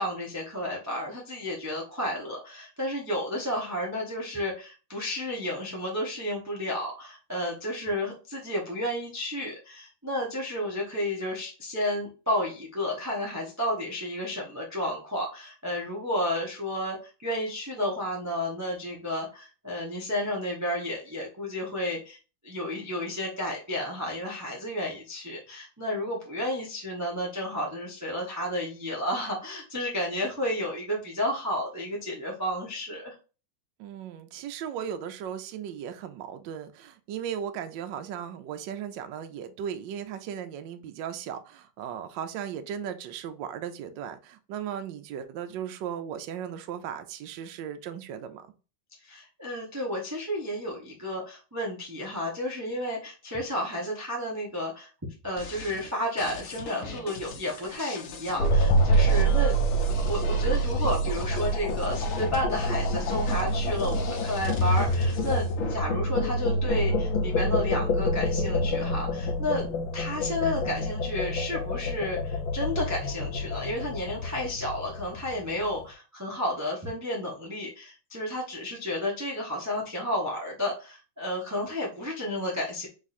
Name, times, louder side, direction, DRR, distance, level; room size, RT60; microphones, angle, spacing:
voice 1, 0.0-22.2 22.4-33.2 49.0-54.9 55.2-59.6 60.1-69.7 69.9-82.9, left 1 dB, 15° right, 0.6 m, -32 dB
voice 2, 33.8-48.5, right 8 dB, 75° right, 1.2 m, -36 dB
sound 1, 55.4-65.7, left 4 dB, 60° left, 0.9 m, -42 dB
sound 2, 58.4-75.6, right 1 dB, 75° left, 1.6 m, -26 dB
3.6 x 3.2 x 4.1 m
omnidirectional pair, 2.2 m